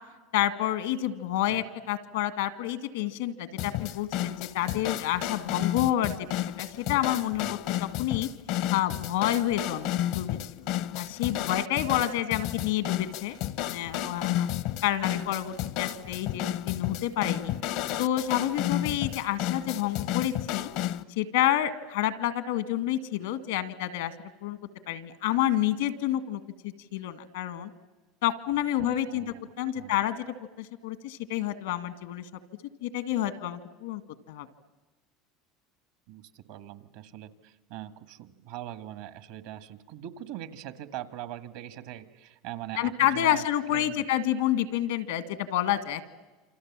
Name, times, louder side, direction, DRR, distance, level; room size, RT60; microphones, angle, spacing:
voice 1, 0.3-8.3 8.7-10.7 11.0-14.5 14.8-17.6 18.0-20.7 21.2-24.1 24.4-24.6 24.9-27.7 28.2-30.2 30.6-32.3 32.8-34.0 34.3-34.5 42.8-46.0, left 12 dB, 85° left, 11 dB, 1.8 m, -29 dB
sound 1, 3.6-21.0, left 12 dB, 70° left, 0.8 m, -32 dB
voice 2, 28.8-29.4 29.8-30.0 36.1-43.4 43.7-44.0, right 12 dB, 75° right, 10 dB, 1.8 m, -42 dB
28.0 x 27.0 x 7.5 m, 1.2 s
supercardioid pair, 100°, 0 cm